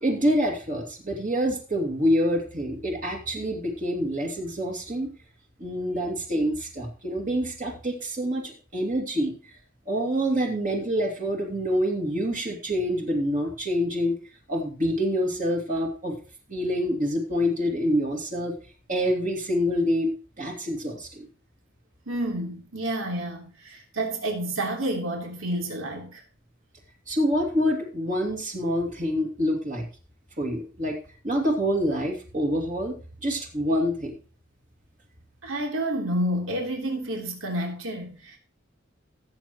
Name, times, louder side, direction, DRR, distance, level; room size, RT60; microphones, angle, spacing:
voice 1, 0.0-5.1 5.6-9.5 9.9-14.2 14.5-16.2 16.5-18.5 18.9-21.3 27.1-29.8 30.4-31.0 31.2-34.1, equal, 40° right, 2.6 m, -26 dB
voice 2, 22.1-26.2 35.4-38.4, right 1 dB, 85° right, 3.4 m, -29 dB
17.5 x 7.8 x 3.1 m
head